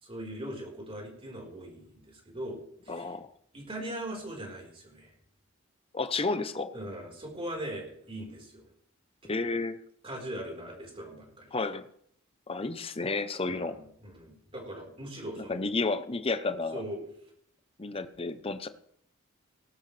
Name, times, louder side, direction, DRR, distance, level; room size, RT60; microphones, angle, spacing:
voice 1, 0.0-3.1 3.5-5.1 6.7-8.6 9.2-9.3 10.0-11.5 13.5-15.6 16.7-17.0, right 1 dB, 25° right, 0 dB, 4.3 m, -40 dB
voice 2, 2.9-3.3 5.9-6.7 9.3-9.8 11.5-11.9 12.5-13.8 15.4-16.8 17.8-18.7, left 3 dB, 25° left, 11 dB, 0.8 m, -31 dB
18.5 x 12.5 x 3.3 m, 0.68 s
head